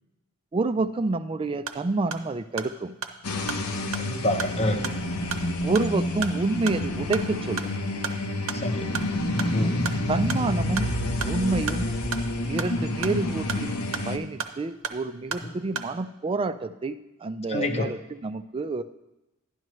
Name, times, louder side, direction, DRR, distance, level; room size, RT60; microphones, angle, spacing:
voice 1, 0.5-3.0 5.6-7.7 10.1-10.9 11.2-11.9 12.4-13.8 14.1-18.8, right 3 dB, 25° right, 11 dB, 0.3 m, -28 dB
sound 1, 1.5-15.9, right 6 dB, 60° right, 0.7 m, -37 dB
sound 2, 3.2-14.2, left 1 dB, 80° left, 0.9 m, -29 dB
voice 2, 4.0-4.8 8.5-8.9 9.5-9.8 15.4-15.5 17.5-17.9, left 1 dB, 30° left, 6 dB, 0.8 m, -27 dB
11.5 x 10.5 x 3.1 m, 0.99 s
head